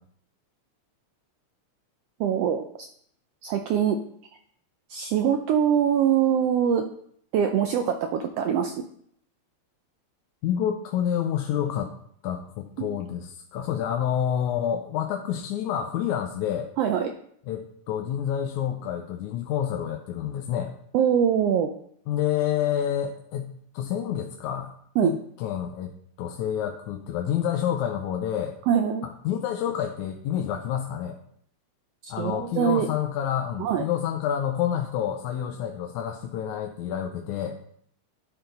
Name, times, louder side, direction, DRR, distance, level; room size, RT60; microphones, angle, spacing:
voice 1, 2.2-2.9 3.4-4.0 4.9-6.8 7.3-8.8 12.8-12.9 16.8-17.1 20.9-21.7 25.0-25.1 28.7-29.0 32.0-32.9 33.6-33.8, right 8 dB, 80° right, 5 dB, 1.4 m, -23 dB
voice 2, 10.4-11.9 12.2-16.7 17.5-20.7 22.1-24.7 25.0-25.9 26.2-28.5 29.0-31.2 32.1-37.6, left 9 dB, 85° left, 3 dB, 2.0 m, -28 dB
12.0 x 4.5 x 3.8 m, 0.66 s
omnidirectional pair, 3.3 m